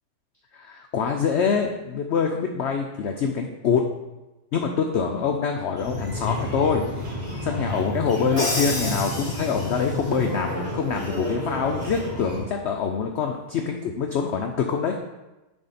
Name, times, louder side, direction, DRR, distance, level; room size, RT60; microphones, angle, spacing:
voice 1, 0.5-3.8 4.5-6.9 7.4-15.0, left 6 dB, 70° left, 3 dB, 0.6 m, -25 dB
sound 1, 5.8-12.4, left 1 dB, 30° right, 1.5 m, -31 dB
Crash cymbal, 8.4-10.0, left 1 dB, 20° left, 1.6 m, -30 dB
10.5 x 3.5 x 4.1 m, 1.1 s
omnidirectional pair, 1.7 m